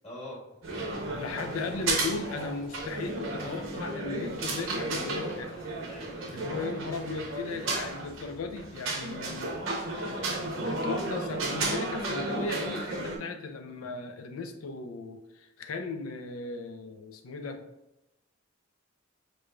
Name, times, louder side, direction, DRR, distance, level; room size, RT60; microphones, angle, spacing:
voice 1, 0.0-0.4 5.9-6.5, left 1 dB, 30° left, -6 dB, 1.4 m, -44 dB
sound 1, 0.6-13.2, right 2 dB, 65° right, 0.7 m, -33 dB
voice 2, 1.1-5.6 6.3-9.5 9.8-17.6, left 4 dB, 90° left, 7 dB, 0.4 m, -37 dB
4.8 x 2.5 x 2.3 m, 0.90 s
head